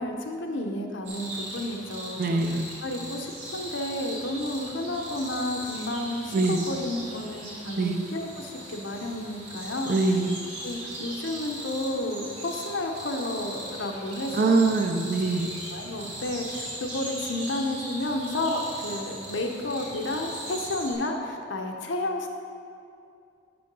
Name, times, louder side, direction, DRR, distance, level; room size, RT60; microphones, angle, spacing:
voice 1, 0.0-2.4 2.8-10.0 10.6-14.7 15.7-22.3, left 1 dB, 75° left, 3 dB, 0.8 m, -31 dB
sound 1, 1.0-20.9, right 1 dB, 80° right, 2.0 m, -39 dB
voice 2, 2.2-2.7 6.3-6.6 7.8-8.0 9.9-10.4 14.3-15.5, right 3 dB, 45° right, 6 dB, 0.5 m, -23 dB
6.9 x 6.4 x 5.3 m, 2.5 s
head